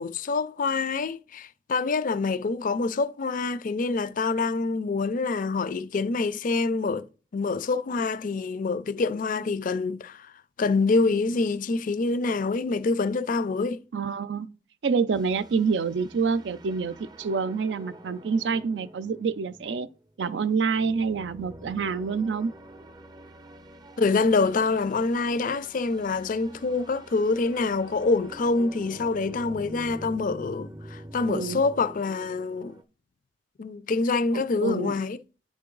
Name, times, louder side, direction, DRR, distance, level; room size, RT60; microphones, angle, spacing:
voice 1, 0.0-7.1 7.3-10.3 10.6-13.8 24.0-32.8 33.6-35.2, left 3 dB, 50° left, 0.4 m, -26 dB
voice 2, 13.9-14.5 14.8-19.9 20.2-22.5 31.3-31.6 34.3-35.0, right 5 dB, 75° right, 0.5 m, -27 dB
sound 1, 15.1-32.8, right 1 dB, 25° right, 0.6 m, -46 dB
9.5 x 3.7 x 3.8 m
head